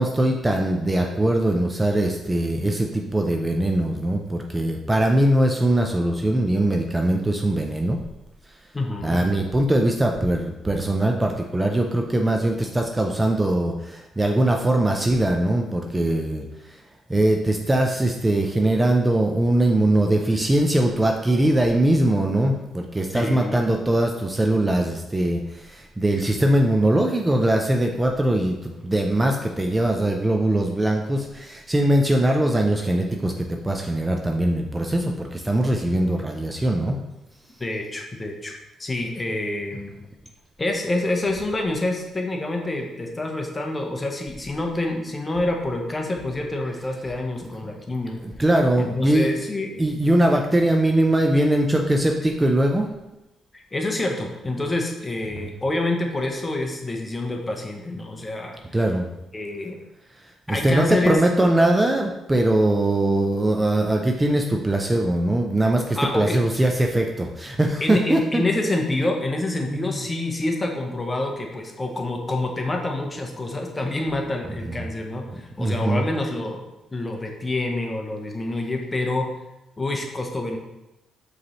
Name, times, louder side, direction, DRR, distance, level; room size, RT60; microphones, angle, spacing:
voice 1, 0.0-8.0 9.0-16.8 17.1-37.0 48.2-49.3 49.8-52.9 55.3-55.5 58.7-59.1 60.5-68.4 69.7-69.9 74.6-74.8 75.6-76.0, right 1 dB, 15° right, 2 dB, 0.4 m, -21 dB
voice 2, 8.7-9.2 23.1-23.6 37.6-38.5 38.8-39.9 40.6-48.2 48.8-49.7 53.5-58.6 59.3-59.8 60.5-61.2 66.0-66.4 67.8-76.6 76.9-79.3 79.8-80.6, left 2 dB, 20° left, 2 dB, 0.7 m, -27 dB
5.0 x 3.2 x 2.9 m, 0.97 s
cardioid pair, 90°, 0 cm